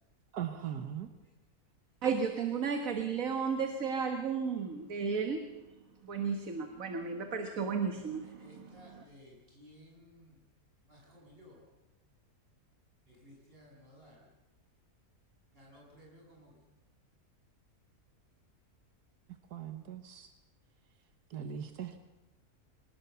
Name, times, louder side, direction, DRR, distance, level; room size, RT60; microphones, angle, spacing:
voice 1, 0.3-1.1 19.5-20.3 21.3-22.0, right 9 dB, 90° right, 1.7 m, -39 dB
voice 2, 2.0-5.4 6.0-9.0, right 5 dB, 60° right, 1.8 m, -34 dB
voice 3, 8.4-10.3 10.9-11.6 13.1-14.2 15.5-16.5, equal, 35° right, 7.7 m, -57 dB
24.0 x 19.5 x 6.9 m
omnidirectional pair, 1.6 m